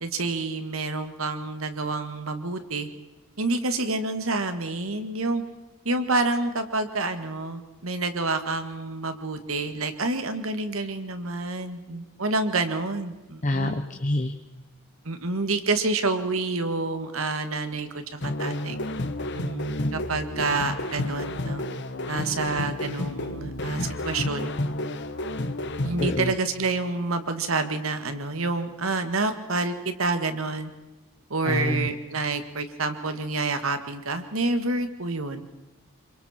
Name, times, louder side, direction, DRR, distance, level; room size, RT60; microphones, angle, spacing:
voice 1, 0.0-2.9 3.4-5.4 5.9-13.8 15.1-18.8 19.3-21.7 22.1-24.5 25.8-30.7 31.3-35.4, right 3 dB, 90° right, 8 dB, 1.9 m, -28 dB
voice 2, 13.4-14.3 26.0-26.3 31.4-31.9, left 1 dB, 40° left, 5 dB, 1.2 m, -26 dB
sound 1, 18.2-26.2, left 1 dB, 60° left, 1.3 m, -31 dB
27.5 x 24.0 x 4.5 m, 1.0 s
head